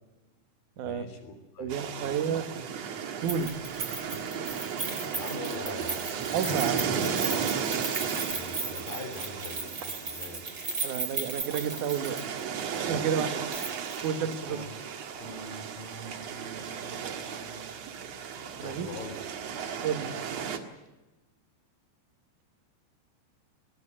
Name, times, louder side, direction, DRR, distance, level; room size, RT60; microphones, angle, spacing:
voice 1, 0.8-1.7 2.0-2.2 5.1-6.0 8.0-10.5 14.4-14.8 15.2-17.7 18.6-19.2, left 2 dB, 50° left, 7 dB, 4.6 m, -43 dB
voice 2, 1.6-2.4 3.2-3.6 6.3-6.8 10.8-12.2 12.9-13.4 14.0-14.6 18.6-18.9 19.8-20.1, right 8 dB, 70° right, 9 dB, 2.0 m, -30 dB
sound 1, 1.7-20.6, right 7 dB, 85° right, 1.4 m, -35 dB
Keys jangling, 3.3-12.4 12.7-12.8 13.5-14.0 14.3-14.4, right 3 dB, 25° right, 3.6 m, -36 dB
21.5 x 19.5 x 8.9 m, 1.1 s
omnidirectional pair, 5.8 m